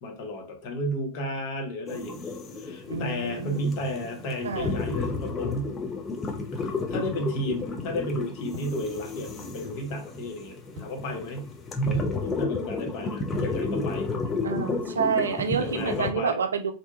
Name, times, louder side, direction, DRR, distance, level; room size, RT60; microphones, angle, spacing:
voice 1, 0.0-5.7 6.6-11.5 11.9-14.1 15.6-16.4, left 1 dB, 45° left, 2 dB, 0.8 m, -33 dB
sound 1, 1.9-16.1, left 2 dB, 20° left, 0.5 m, -32 dB
voice 2, 2.9-3.6 4.4-4.8 14.4-16.7, right 5 dB, 70° right, 8 dB, 0.3 m, -28 dB
sound 2, 6.2-12.0, left 2 dB, 40° right, 1.0 m, -47 dB
2.6 x 2.2 x 2.7 m, 0.37 s
figure-of-eight pair, 90°, 0 cm